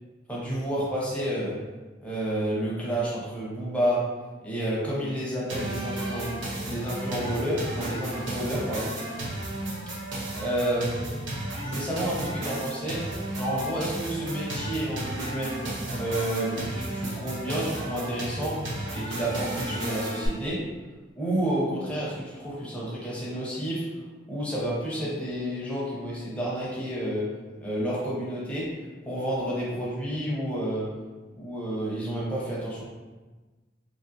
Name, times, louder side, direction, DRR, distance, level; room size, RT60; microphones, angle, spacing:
voice 1, 0.3-1.6 2.0-4.0 4.4-8.9 10.4-11.1 11.6-13.0 13.3-15.5 16.0-18.6 18.9-20.6 21.2-23.8 24.3-27.3 27.6-28.7 29.0-30.9 31.4-32.8, right 1 dB, 5° left, -7 dB, 0.8 m, -30 dB
sound 1, 5.5-20.3, right 1 dB, 70° right, 0.7 m, -33 dB
3.0 x 2.6 x 2.5 m, 1.2 s
head